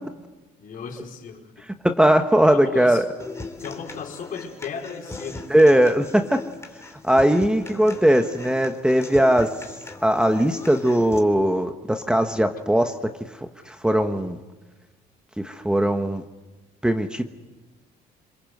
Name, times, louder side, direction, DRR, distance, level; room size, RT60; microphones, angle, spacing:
voice 1, 0.6-1.7 2.5-3.0 3.6-5.5, left 6 dB, 55° left, 1 dB, 4.9 m, -36 dB
voice 2, 1.8-3.1 5.5-6.4 7.0-9.5 10.0-13.1 13.7-14.4 15.4-16.2 16.8-17.2, right 1 dB, 5° right, 6 dB, 1.3 m, -19 dB
Human voice / Acoustic guitar, 3.2-11.2, left 3 dB, 15° left, 2.9 m, -39 dB
27.0 x 22.5 x 7.9 m, 1.2 s
cardioid pair, 110°, 17 cm